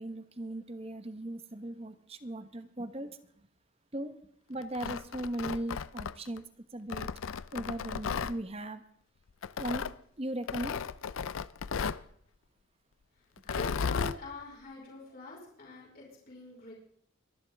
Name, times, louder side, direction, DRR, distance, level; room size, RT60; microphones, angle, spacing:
voice 1, 0.0-3.1 3.9-4.1 4.5-6.4 6.7-7.1 7.5-8.8 9.6-9.9 10.2-10.8, right 1 dB, 30° right, 10 dB, 1.0 m, -38 dB
Tearing, 4.6-6.4 6.9-8.3 9.4-9.9 10.5-12.0 13.4-14.2, left 6 dB, 80° left, 0.5 m, -34 dB
voice 2, 13.5-16.7, left 2 dB, 45° left, -3 dB, 4.9 m, -44 dB
24.0 x 11.0 x 3.5 m, 0.66 s
head